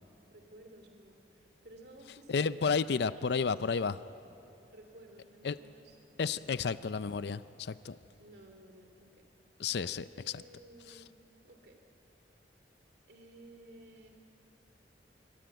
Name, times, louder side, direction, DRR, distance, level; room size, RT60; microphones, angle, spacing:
voice 1, 0.3-4.3 4.7-6.7 8.2-9.3 10.1-11.1 11.4-11.8 13.1-14.1, right 1 dB, 65° right, 4 dB, 2.5 m, -55 dB
voice 2, 2.3-4.0 5.4-5.6 6.2-8.0 9.6-10.4 10.9-11.0, left 5 dB, 65° left, 15 dB, 0.5 m, -32 dB
25.5 x 23.5 x 9.2 m, 3.0 s
head